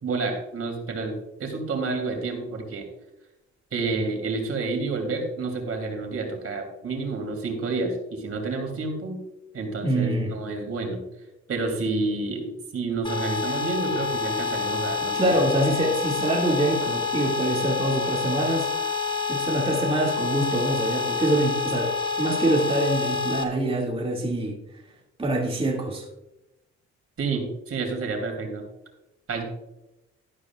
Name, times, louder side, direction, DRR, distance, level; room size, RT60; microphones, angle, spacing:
voice 1, 0.0-2.8 3.7-9.2 9.5-11.0 11.5-15.4 27.2-28.6 29.3-29.4, right 3 dB, 50° right, 3 dB, 3.2 m, -29 dB
voice 2, 9.8-10.3 15.1-18.7 19.3-24.6 25.2-26.1, right 1 dB, 20° right, -2 dB, 2.4 m, -25 dB
sound 1, 13.0-23.4, left 5 dB, 15° left, 1.4 m, -28 dB
13.0 x 11.0 x 2.5 m, 0.93 s
supercardioid pair, 70°, 29 cm